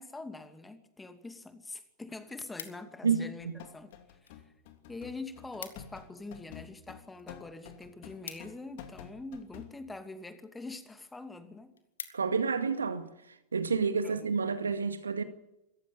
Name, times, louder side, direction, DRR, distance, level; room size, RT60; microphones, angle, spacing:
voice 1, 0.0-3.9 4.2-4.3 4.9-11.8 13.0-13.1 14.0-14.4, left 3 dB, 10° left, 2.5 m, -44 dB
sound 1, 2.2-3.2 3.9-4.4 4.7-4.8 5.1-5.2 5.4-6.0 6.4-9.2 9.9-10.3 10.8-10.9 11.2-11.3 11.6-12.6 13.1-13.3, left 7 dB, 70° left, 2.0 m, -48 dB
voice 2, 3.0-3.5 12.1-13.1 13.5-15.2, right 5 dB, 75° right, 2.0 m, -29 dB
sound 2, 3.4-9.7, left 9 dB, 50° left, 2.6 m, -49 dB
26.5 x 15.0 x 8.4 m
figure-of-eight pair, 90°, 0 cm